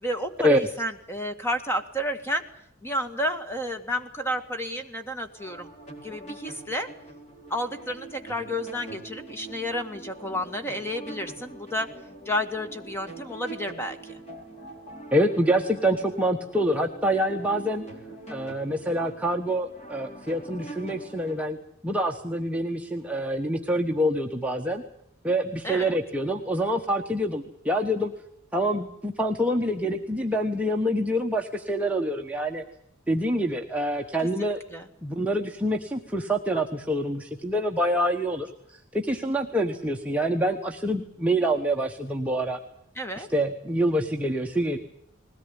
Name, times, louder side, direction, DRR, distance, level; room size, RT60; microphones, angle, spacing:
voice 1, 0.0-2.4 2.8-5.7 6.0-6.9 7.5-11.9 12.2-14.2 25.6-26.0 34.4-34.9 43.0-43.3, equal, 10° left, 7 dB, 1.8 m, -31 dB
sound 1, 5.3-21.4, right 2 dB, 35° left, 4.5 m, -44 dB
voice 2, 15.1-17.8 18.3-21.6 21.8-24.8 25.2-28.1 28.5-32.6 33.1-34.6 35.0-42.6 43.2-44.8, equal, 5° right, 1 dB, 1.2 m, -26 dB
20.5 x 17.5 x 9.9 m, 0.70 s
head